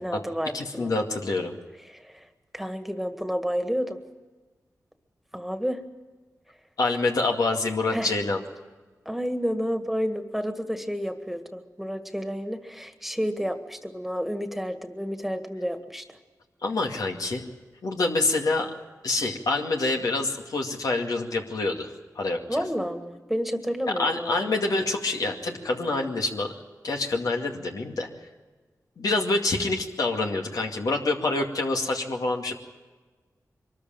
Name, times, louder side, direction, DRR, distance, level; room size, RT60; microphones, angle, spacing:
voice 1, 0.0-0.9 1.9-2.3 2.5-4.0 5.3-5.8 7.9-8.2 9.1-16.2 22.5-24.5 29.1-29.3, equal, 5° right, 8 dB, 1.8 m, -30 dB
voice 2, 0.5-1.6 6.8-8.4 16.6-17.4 17.8-18.7 19.0-22.6 24.0-26.5 26.8-28.1 29.0-32.5, left 2 dB, 80° left, 1 dB, 2.2 m, -26 dB
23.0 x 13.5 x 9.0 m, 1.3 s
cardioid pair, 60°, 6 cm